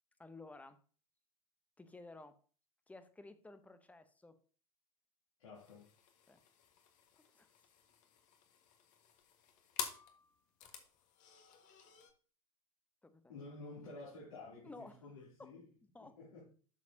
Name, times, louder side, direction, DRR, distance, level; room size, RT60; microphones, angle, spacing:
voice 1, 0.2-0.8 1.8-2.4 2.9-4.4 6.3-6.4 7.1-7.5 13.0-13.4 14.6-15.0 15.4-15.5 15.9-16.2, left 2 dB, 10° left, 0.9 m, -54 dB
voice 2, 5.4-5.9 13.3-15.7 16.0-16.5, left 3 dB, 70° left, 3.0 m, -51 dB
sound 1, 5.5-12.1, left 8 dB, 40° left, 1.7 m, -50 dB
12.0 x 6.3 x 2.8 m
figure-of-eight pair, 90°, 19 cm